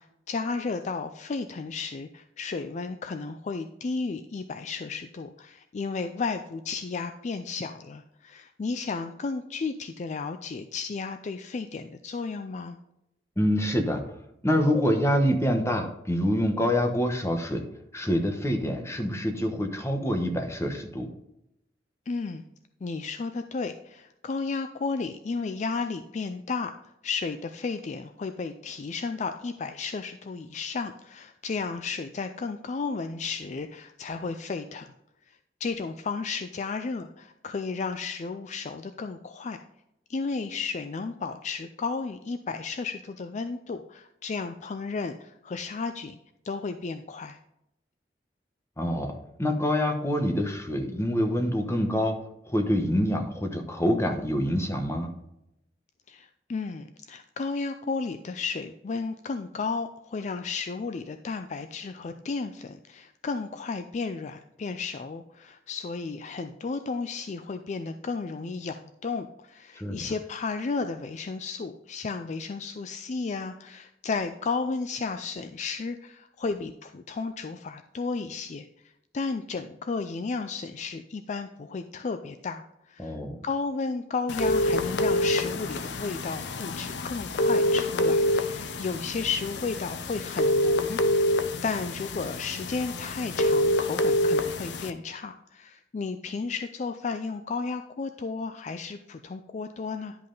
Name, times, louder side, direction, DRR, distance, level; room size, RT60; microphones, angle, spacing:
voice 1, 0.0-12.8 22.1-22.5 22.8-26.7 27.0-34.9 35.3-39.6 40.1-46.2 46.4-47.4 56.1-78.7 79.1-91.3 91.6-100.2, left 4 dB, 40° left, 8 dB, 0.4 m, -33 dB
voice 2, 13.4-14.0 14.4-17.6 17.9-21.1 48.8-52.2 52.5-55.1 69.8-70.0 83.0-83.4, equal, 15° left, 5 dB, 1.0 m, -26 dB
sound 1, 84.3-94.9, left 1 dB, 80° left, 0.7 m, -26 dB
11.0 x 5.4 x 3.9 m, 0.84 s
head